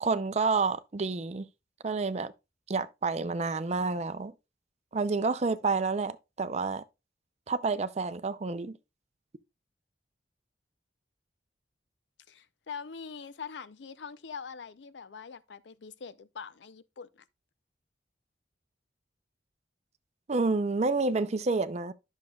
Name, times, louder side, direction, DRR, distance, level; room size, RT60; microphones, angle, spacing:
voice 1, 0.0-1.5 1.8-2.3 2.7-4.3 4.9-6.8 7.5-8.8 20.3-21.9, right 4 dB, 35° right, 0.5 m, -29 dB
voice 2, 12.3-17.2, left 6 dB, 75° left, 0.5 m, -43 dB
10.5 x 6.4 x 2.3 m
head